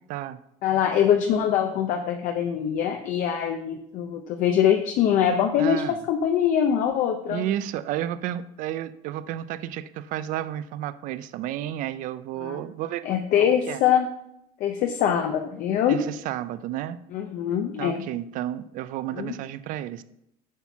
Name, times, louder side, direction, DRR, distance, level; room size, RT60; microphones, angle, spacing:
voice 1, 0.6-7.5 12.4-12.6 13.0-14.1 14.6-16.0 17.1-18.1 19.1-19.3, left 9 dB, 60° left, 5 dB, 0.7 m, -23 dB
voice 2, 5.6-6.0 7.3-13.8 15.9-17.0 17.8-20.0, right 12 dB, 60° right, 14 dB, 0.4 m, -32 dB
8.1 x 4.4 x 7.1 m, 0.78 s
cardioid pair, 180°, 15 cm